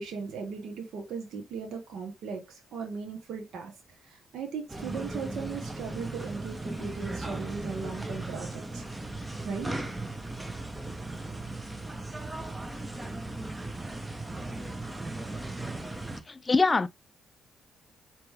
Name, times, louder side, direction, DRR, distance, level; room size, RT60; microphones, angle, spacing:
voice 1, 0.0-3.7 4.0-8.8 9.4-9.7, right 5 dB, 70° right, 1.0 m, -38 dB
sound 1, 4.7-16.2, right 2 dB, 15° right, 0.7 m, -37 dB
voice 2, 16.3-16.9, left 3 dB, 25° left, 0.4 m, -23 dB
4.5 x 2.9 x 3.3 m
cardioid pair, 90°, 0 cm